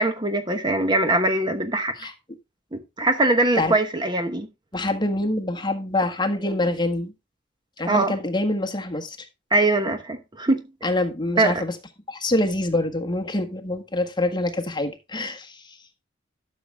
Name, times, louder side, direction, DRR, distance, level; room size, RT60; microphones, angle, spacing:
voice 1, 0.0-2.1 2.7-4.5 7.9-8.2 9.5-10.6 11.4-11.5, right 2 dB, 25° right, 1.0 m, -22 dB
voice 2, 4.7-7.1 7.8-9.3 10.8-11.7 12.1-15.8, left 2 dB, 25° left, 1.5 m, -25 dB
12.5 x 6.6 x 3.4 m
head